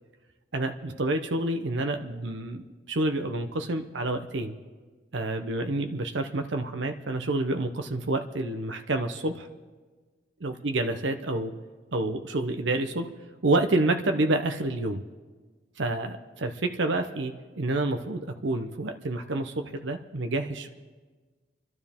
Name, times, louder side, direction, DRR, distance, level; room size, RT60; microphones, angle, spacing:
voice 1, 0.5-4.5 5.1-9.5 10.4-11.5 11.9-13.1 13.4-15.0 15.8-20.7, right 2 dB, 80° right, 6 dB, 0.8 m, -28 dB
28.0 x 12.0 x 3.6 m, 1.4 s
head